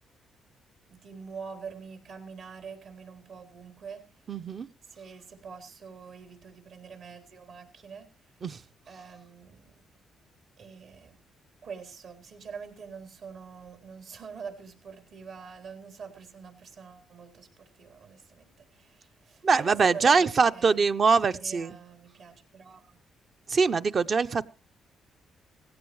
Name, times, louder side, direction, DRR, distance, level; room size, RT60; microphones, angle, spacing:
voice 1, 0.9-4.0 4.9-8.1 8.9-9.8 10.6-11.2 11.6-20.9 21.2-23.0, right 6 dB, 70° right, 4.0 m, -45 dB
voice 2, 4.3-4.7 8.4-8.6 19.4-21.8 23.5-24.4, right 5 dB, 45° right, 0.6 m, -23 dB
17.5 x 16.5 x 3.2 m
cardioid pair, 90°, 0 cm